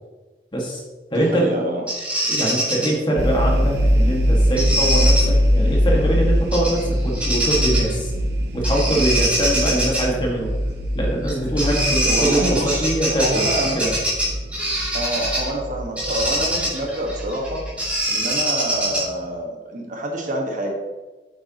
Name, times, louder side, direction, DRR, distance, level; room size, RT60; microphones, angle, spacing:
voice 1, 0.5-0.8 1.1-1.6 2.3-8.1 8.5-10.5 10.9-14.0, right 1 dB, 25° left, -2 dB, 1.8 m, -23 dB
voice 2, 1.1-1.8 12.0-13.8 14.9-17.6 18.1-20.7, right 1 dB, 45° right, 0 dB, 1.5 m, -26 dB
Bird vocalization bird call bird song, 1.9-2.9 4.6-5.2 6.5-6.8 7.1-7.9 8.6-10.0 11.3-11.4 11.6-15.5 16.0-19.2, right 1 dB, 10° right, 2.7 m, -23 dB
sound 1, 3.2-17.9, equal, 70° right, 0.9 m, -22 dB
8.5 x 8.2 x 3.0 m, 1.2 s
head